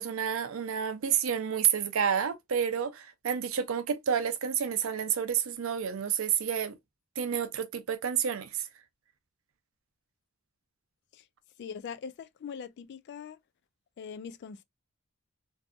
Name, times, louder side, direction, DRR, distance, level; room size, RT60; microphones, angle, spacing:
voice 1, 0.0-6.8 7.2-8.7, right 8 dB, 75° right, 0.5 m, -29 dB
voice 2, 11.6-13.4 14.0-14.6, left 6 dB, 55° left, 0.3 m, -42 dB
2.6 x 2.4 x 2.3 m
head